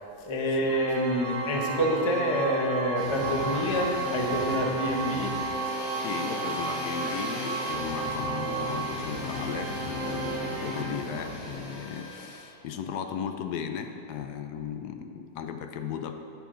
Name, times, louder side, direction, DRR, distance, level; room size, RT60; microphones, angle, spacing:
voice 1, 0.2-5.4, equal, 25° left, 0 dB, 0.7 m, -27 dB
Organ, 0.6-11.4, right 2 dB, 55° right, 1.7 m, -36 dB
sound 1, 1.2-9.0, right 6 dB, 80° right, 0.4 m, -35 dB
sound 2, 3.0-12.5, left 1 dB, 50° left, 2.5 m, -38 dB
voice 2, 6.0-16.1, left 7 dB, 85° left, 7 dB, 1.2 m, -36 dB
12.0 x 8.0 x 3.8 m, 2.5 s
omnidirectional pair, 1.7 m